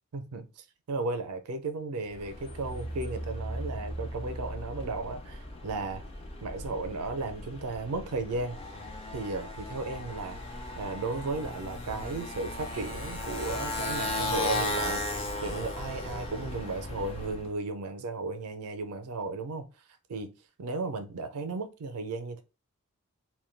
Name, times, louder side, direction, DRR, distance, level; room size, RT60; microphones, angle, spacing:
voice 1, 0.1-6.0 6.4-8.6 9.1-10.4 10.8-15.0 15.4-19.6 20.1-20.3 20.6-22.4, right 3 dB, 80° right, 0.4 m, -35 dB
Motorcycle, 2.1-17.5, left 1 dB, 25° left, 0.4 m, -36 dB
2.2 x 2.1 x 3.1 m
head